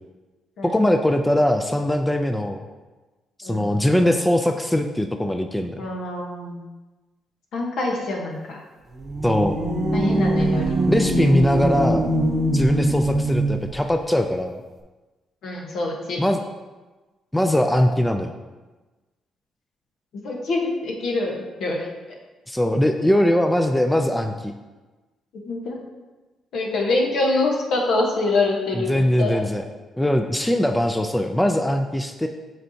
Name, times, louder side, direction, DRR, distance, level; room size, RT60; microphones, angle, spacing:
voice 1, 0.6-2.6 3.4-5.8 9.2-9.5 10.9-12.1 12.5-14.6 16.2-16.4 17.3-18.3 22.5-24.5 28.7-29.6 30.0-32.3, left 1 dB, 5° left, 6 dB, 0.3 m, -21 dB
voice 2, 3.4-4.2 5.8-6.6 7.5-8.6 9.9-10.7 15.4-16.2 20.1-21.9 25.4-25.8 26.5-29.4, left 2 dB, 70° left, 0 dB, 1.2 m, -25 dB
sound 1, 8.9-13.7, right 1 dB, 30° right, 0.8 m, -22 dB
7.8 x 4.4 x 2.8 m, 1.2 s
cardioid pair, 115°, 0 cm